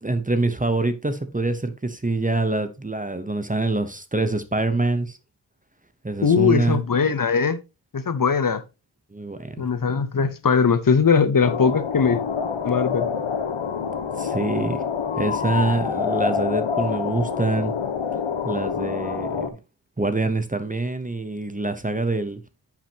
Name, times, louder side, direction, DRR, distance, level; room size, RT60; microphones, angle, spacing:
voice 1, 0.0-5.2 6.0-6.8 9.1-9.7 14.2-14.8 15.2-17.7 18.4-19.5 20.0-22.4, right 2 dB, 15° right, 0.8 m, -25 dB
voice 2, 6.2-7.6 7.9-8.6 9.6-12.2 12.6-13.1, left 6 dB, 45° left, 0.8 m, -20 dB
sound 1, 11.4-19.5, left 6 dB, 85° left, 1.2 m, -26 dB
9.9 x 6.0 x 2.9 m
wide cardioid pair, 105°, 47 cm